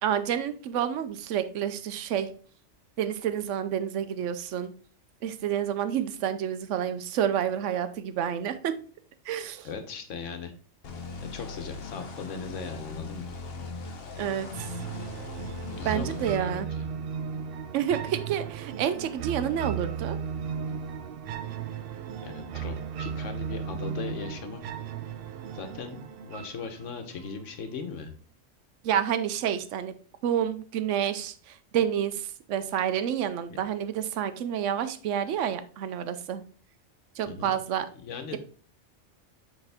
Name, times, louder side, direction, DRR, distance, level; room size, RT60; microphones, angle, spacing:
voice 1, 0.0-2.3 3.0-4.7 5.2-8.8 9.3-9.7 14.2-14.7 15.8-16.7 17.7-20.2 28.8-29.9 30.2-36.4 37.2-37.9, right 9 dB, 90° right, 11 dB, 0.9 m, -29 dB
voice 2, 9.6-10.5 11.3-13.2 15.7-16.9 22.2-24.6 25.5-28.1 33.5-33.6 37.2-37.5 38.0-38.4, left 5 dB, 90° left, 7 dB, 1.2 m, -38 dB
sound 1, 10.8-16.4, left 4 dB, 60° left, 1.0 m, -39 dB
sound 2, 14.5-27.5, right 7 dB, 60° right, 0.7 m, -36 dB
7.9 x 3.5 x 3.4 m, 0.42 s
omnidirectional pair, 1.2 m